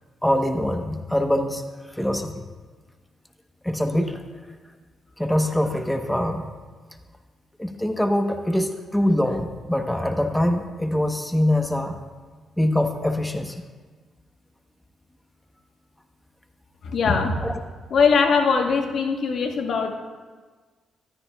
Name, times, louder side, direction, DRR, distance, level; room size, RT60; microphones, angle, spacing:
voice 1, 0.2-2.4 3.6-4.2 5.2-6.5 7.6-12.0 12.6-13.6 17.4-17.6, left 1 dB, 5° left, 6 dB, 0.9 m, -24 dB
voice 2, 16.8-17.4 17.9-19.9, left 5 dB, 65° left, 4 dB, 1.1 m, -21 dB
14.0 x 13.0 x 2.3 m, 1.4 s
cardioid pair, 70°, 0 cm